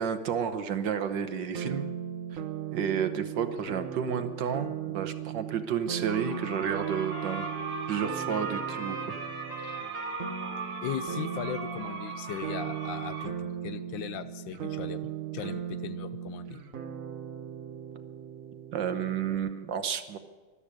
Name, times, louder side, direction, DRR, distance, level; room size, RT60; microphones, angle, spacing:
voice 1, 0.0-1.9 2.7-7.5 7.9-9.2 9.6-9.8 18.7-20.2, right 7 dB, 65° right, 10 dB, 1.6 m, -31 dB
sound 1, 1.5-19.4, right 9 dB, 50° right, 1.2 m, -38 dB
sound 2, 6.1-13.3, right 7 dB, 85° right, 1.9 m, -39 dB
Trumpet, 6.3-13.4, left 1 dB, 50° left, 4.6 m, -42 dB
voice 2, 10.8-16.6, left 10 dB, 75° left, 12 dB, 1.4 m, -38 dB
13.0 x 12.5 x 8.5 m, 1.4 s
omnidirectional pair, 2.2 m